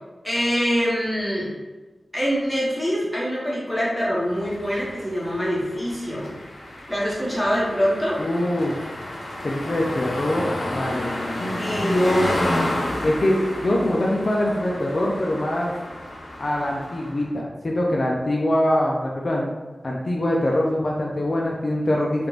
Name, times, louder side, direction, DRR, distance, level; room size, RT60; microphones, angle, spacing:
voice 1, 0.2-1.5 2.1-6.3 6.9-8.2 11.6-12.2, equal, 5° left, -6 dB, 1.2 m, -24 dB
sound 1, 4.3-17.3, left 1 dB, 80° left, 0.7 m, -31 dB
voice 2, 8.2-8.8 9.4-11.1 11.4-12.3 13.0-15.7 16.4-19.5 19.8-22.3, left 1 dB, 55° left, -2 dB, 0.4 m, -23 dB
3.3 x 2.4 x 3.1 m, 1.2 s
wide cardioid pair, 65°, 0 cm